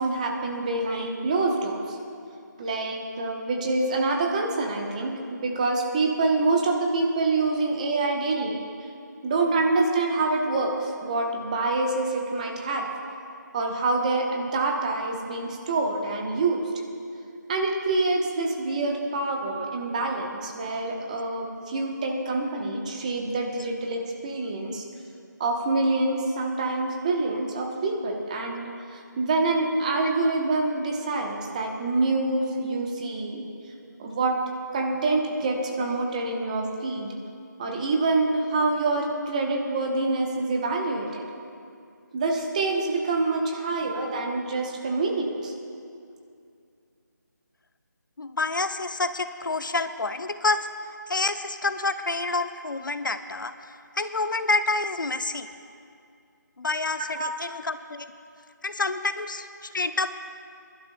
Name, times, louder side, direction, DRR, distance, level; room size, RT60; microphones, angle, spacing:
voice 1, 0.0-2.0 2.6-8.6 9.2-12.9 13.5-16.6 17.5-24.8 25.4-33.5 34.0-34.4 34.7-37.1 37.6-41.2 42.1-45.5 57.0-57.3, right 3 dB, 20° right, 2 dB, 0.9 m, -26 dB
voice 2, 48.2-53.5 54.0-55.5 56.6-58.1 58.6-60.1, left 3 dB, 85° left, 10 dB, 0.7 m, -28 dB
26.0 x 11.5 x 2.2 m, 2.4 s
figure-of-eight pair, 165°, 10 cm